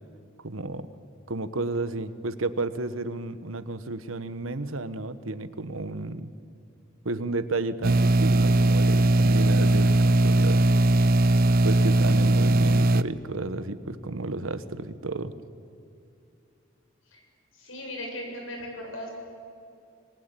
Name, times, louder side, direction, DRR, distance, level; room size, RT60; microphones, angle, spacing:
voice 1, 0.4-0.9 1.3-6.3 7.0-10.6 11.6-15.3, right 2 dB, 85° right, 12 dB, 1.3 m, -32 dB
sound 1, 7.8-13.0, right 2 dB, 45° right, 0.6 m, -20 dB
voice 2, 17.5-19.1, left 1 dB, 80° left, 1 dB, 7.4 m, -37 dB
26.5 x 20.0 x 9.1 m, 2.6 s
head